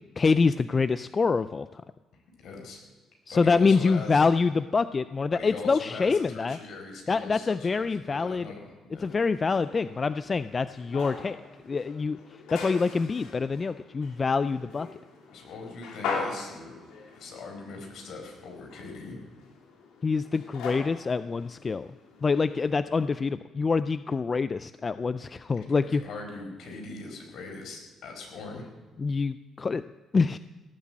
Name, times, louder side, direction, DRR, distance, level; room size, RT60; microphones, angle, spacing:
voice 1, 0.0-1.8 3.3-6.6 7.1-8.5 9.0-11.4 11.7-12.2 12.5-14.9 20.0-21.9 22.2-26.0 29.0-29.8 30.1-30.4, left 4 dB, 35° left, 13 dB, 0.4 m, -26 dB
voice 2, 2.4-2.8 3.3-4.3 5.3-9.1 15.3-16.8 17.1-19.2 25.6-28.7, left 3 dB, 70° left, 2 dB, 4.8 m, -41 dB
sound 1, 9.0-22.7, left 4 dB, 90° left, 3.1 m, -41 dB
18.0 x 8.2 x 7.6 m, 1.3 s
cardioid pair, 85°, 0 cm